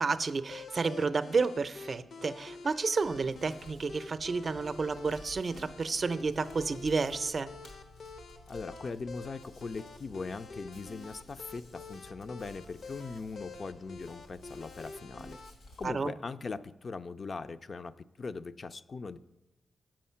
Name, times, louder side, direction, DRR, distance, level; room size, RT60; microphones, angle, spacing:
voice 1, 0.0-7.5 15.8-16.1, right 4 dB, 50° right, 12 dB, 0.5 m, -31 dB
sound 1, 0.5-15.5, left 3 dB, 70° left, 0.8 m, -48 dB
Hands, 3.0-15.9, left 2 dB, 90° left, 2.3 m, -54 dB
voice 2, 8.5-15.4 15.8-17.9 18.2-19.2, left 4 dB, 50° left, 11 dB, 0.4 m, -40 dB
7.5 x 7.0 x 5.6 m, 1.0 s
cardioid pair, 55°, 0 cm